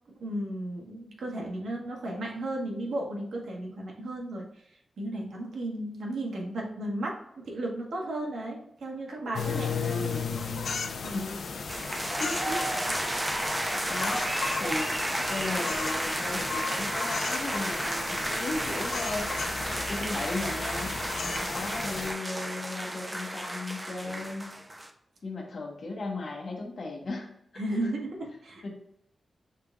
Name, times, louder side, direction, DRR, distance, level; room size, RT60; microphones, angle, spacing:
voice 1, 0.2-10.2 11.0-11.3 21.2-21.5 27.6-28.7, right 1 dB, 85° right, 0 dB, 1.2 m, -35 dB
sound 1, 9.3-22.1, left 5 dB, 70° left, 0.5 m, -35 dB
voice 2, 9.5-10.3 11.1-11.4 12.2-12.6 12.9-13.1 13.9-14.3 14.6-15.0 15.3-19.3 19.9-21.0 21.5-24.5 25.2-27.3 28.6-28.7, left 2 dB, 55° left, 0 dB, 1.1 m, -36 dB
sound 2, 11.7-24.9, right 1 dB, 15° right, 0.5 m, -32 dB
6.5 x 3.5 x 2.3 m, 0.77 s
wide cardioid pair, 165°, 0 cm